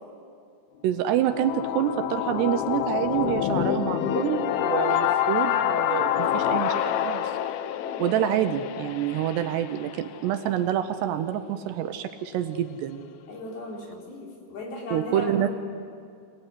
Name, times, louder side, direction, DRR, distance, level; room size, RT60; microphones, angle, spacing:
voice 1, 0.8-7.3 8.0-13.1 14.9-15.5, right 11 dB, 75° right, 9 dB, 2.8 m, -27 dB
sound 1, 1.0-10.9, left 10 dB, 80° left, 2.2 m, -27 dB
voice 2, 5.7-7.0 7.8-8.2 13.3-15.5, left 2 dB, 55° left, -1 dB, 5.6 m, -38 dB
27.0 x 18.5 x 9.8 m, 2.3 s
omnidirectional pair, 5.3 m